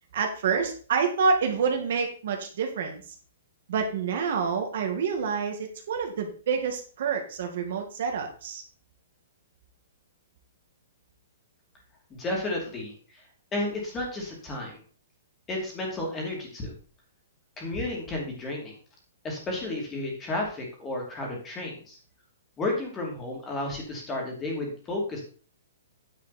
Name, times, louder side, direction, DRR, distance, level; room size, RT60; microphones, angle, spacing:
voice 1, 0.1-3.0 3.7-8.6, right 5 dB, 50° right, 4 dB, 2.0 m, -27 dB
voice 2, 12.1-12.9 13.5-14.8 15.5-16.7 17.6-18.7 19.2-22.0 22.6-25.2, left 2 dB, 15° left, 0 dB, 2.6 m, -32 dB
9.3 x 7.5 x 4.2 m, 0.41 s
hypercardioid pair, 170°, 0 cm